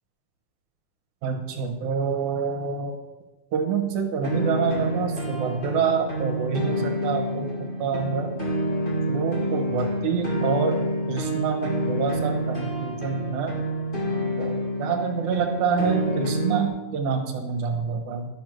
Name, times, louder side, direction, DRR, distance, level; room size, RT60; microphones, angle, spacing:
voice 1, 1.2-2.9 3.5-8.3 9.1-13.6 14.4-18.3, right 6 dB, 75° right, 3 dB, 2.5 m, -27 dB
sound 1, 4.2-16.7, equal, 20° left, 1.8 m, -28 dB
11.5 x 6.6 x 6.2 m, 1.1 s
omnidirectional pair, 3.6 m